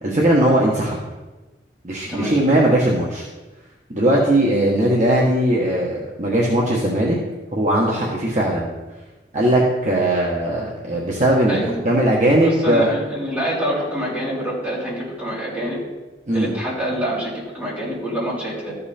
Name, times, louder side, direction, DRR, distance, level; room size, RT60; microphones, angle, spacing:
voice 1, 0.0-1.0 1.8-3.3 3.9-7.2 7.5-8.7 9.3-12.9 16.3-16.5, right 1 dB, 40° right, -3 dB, 1.2 m, -19 dB
voice 2, 11.5-11.8 12.4-15.8 16.3-18.8, equal, 10° right, -8 dB, 3.4 m, -26 dB
13.5 x 5.5 x 4.3 m, 1.1 s
head